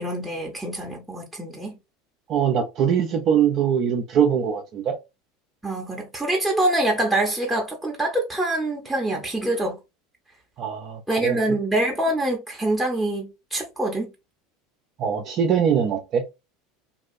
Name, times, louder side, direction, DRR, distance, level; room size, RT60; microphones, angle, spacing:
voice 1, 0.0-1.8 5.6-9.8 11.1-14.1, right 1 dB, 5° right, 0.8 m, -25 dB
voice 2, 2.3-5.0 10.6-11.6 15.0-16.2, right 8 dB, 45° right, 0.4 m, -22 dB
2.6 x 2.3 x 2.5 m
figure-of-eight pair, 75°, 0 cm